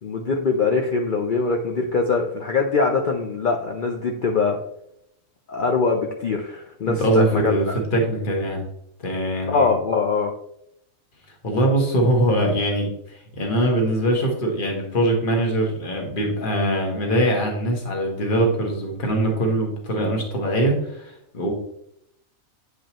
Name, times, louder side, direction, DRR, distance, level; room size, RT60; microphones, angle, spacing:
voice 1, 0.0-4.6 5.5-7.8 9.5-10.3, left 4 dB, 55° left, 2 dB, 0.6 m, -22 dB
voice 2, 6.8-7.6 7.9-8.6 9.0-9.7 11.4-21.5, right 1 dB, 40° left, 1 dB, 1.6 m, -22 dB
8.1 x 5.1 x 3.0 m, 0.77 s
omnidirectional pair, 1.5 m